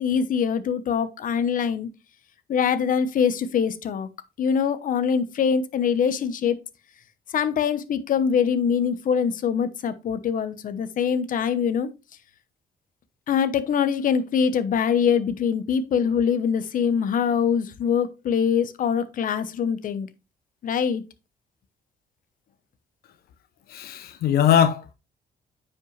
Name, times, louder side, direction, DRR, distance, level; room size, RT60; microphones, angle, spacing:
voice 1, 0.0-1.9 2.5-4.1 4.4-6.6 7.3-11.9 13.3-20.1 20.6-21.0, left 7 dB, 60° left, 1.0 m, -23 dB
voice 2, 23.7-24.9, left 9 dB, 80° left, 0.8 m, -21 dB
9.7 x 5.6 x 3.2 m
cardioid pair, 110°, 16 cm